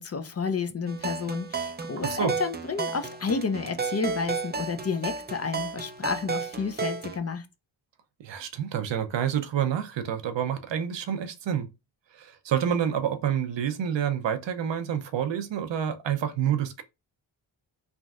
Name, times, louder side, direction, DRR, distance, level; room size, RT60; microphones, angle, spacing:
voice 1, 0.0-7.5, left 5 dB, 35° left, 0.5 m, -31 dB
sound 1, 0.9-7.2, right 5 dB, 25° right, 0.4 m, -33 dB
voice 2, 2.0-2.3 8.2-11.7 12.1-16.8, right 9 dB, 70° right, 0.6 m, -28 dB
3.4 x 2.5 x 2.4 m
cardioid pair, 55°, 46 cm